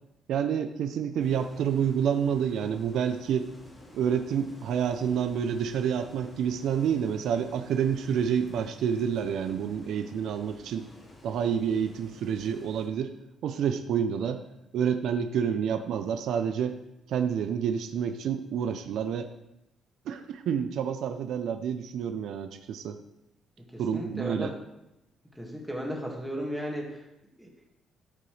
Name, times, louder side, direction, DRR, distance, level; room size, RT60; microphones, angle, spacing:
voice 1, 0.3-3.5 3.9-10.8 11.2-13.1 13.4-14.4 14.7-16.8 17.1-19.3 20.1-23.0 23.8-24.5, right 8 dB, 70° right, 8 dB, 0.6 m, -28 dB
sound 1, 1.2-12.9, left 1 dB, 25° left, 2.3 m, -51 dB
voice 2, 23.7-24.5 25.4-27.0 27.4-27.5, equal, ahead, -2 dB, 2.0 m, -35 dB
12.5 x 6.9 x 3.3 m, 0.88 s
cardioid pair, 135°, 0 cm